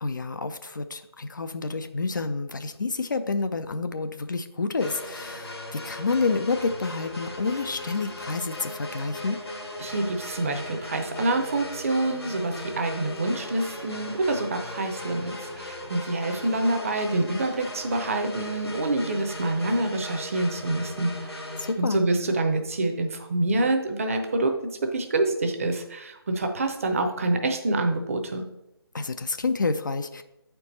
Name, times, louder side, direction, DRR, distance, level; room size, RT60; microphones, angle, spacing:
voice 1, 0.0-9.4 21.6-22.0 28.9-30.2, left 4 dB, 50° left, 9 dB, 0.5 m, -29 dB
sound 1, 4.8-21.7, left 1 dB, 75° left, 1.5 m, -38 dB
voice 2, 9.8-28.4, right 2 dB, 35° right, 5 dB, 0.7 m, -27 dB
8.5 x 4.5 x 4.2 m, 0.89 s
figure-of-eight pair, 155°, 13 cm